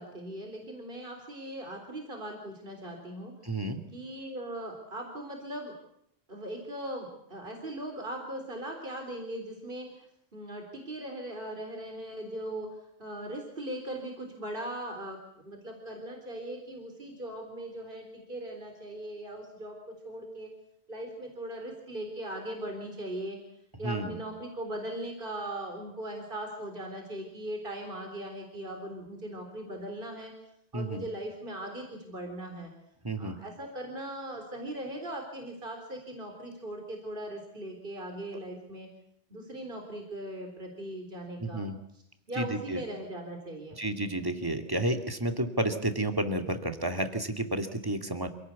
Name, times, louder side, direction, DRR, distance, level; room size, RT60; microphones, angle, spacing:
voice 1, 0.0-3.3 3.9-5.7 6.3-20.5 20.9-23.4 23.8-30.3 30.7-32.7 33.2-38.9 39.3-41.7 42.3-43.8, right 1 dB, 50° right, 3 dB, 4.1 m, -39 dB
voice 2, 3.4-3.8 23.8-24.2 30.7-31.0 33.0-33.4 41.4-41.8 42.4-42.8 43.8-48.3, right 1 dB, 20° right, 6 dB, 2.4 m, -31 dB
27.5 x 18.0 x 8.4 m, 0.73 s
omnidirectional pair, 1.1 m